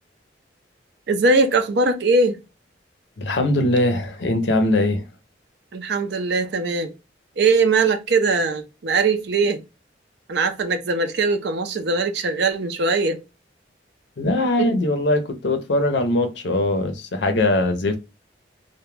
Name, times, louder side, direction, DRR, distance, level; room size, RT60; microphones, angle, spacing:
voice 1, 1.1-2.4 5.7-6.9 7.4-9.6 10.3-13.2 14.6-14.7, right 3 dB, 65° right, 0.5 m, -20 dB
voice 2, 3.2-5.0 14.2-18.0, left 1 dB, 75° left, 0.5 m, -21 dB
2.2 x 2.1 x 3.1 m
head